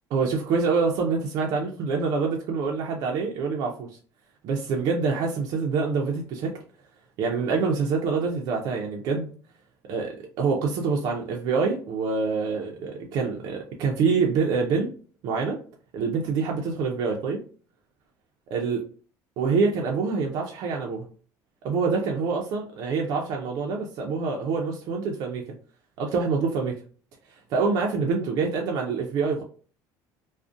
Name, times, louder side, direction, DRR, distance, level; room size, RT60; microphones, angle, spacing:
voice 1, 0.1-3.9 4.4-6.6 7.2-9.3 9.9-14.9 15.2-15.6 15.9-17.4 18.5-18.8 19.4-21.1 21.6-25.4 26.0-26.8 27.3-29.4, right 4 dB, 55° right, 0 dB, 0.4 m, -26 dB
2.4 x 2.0 x 2.4 m, 0.41 s
cardioid pair, 170°, 8 cm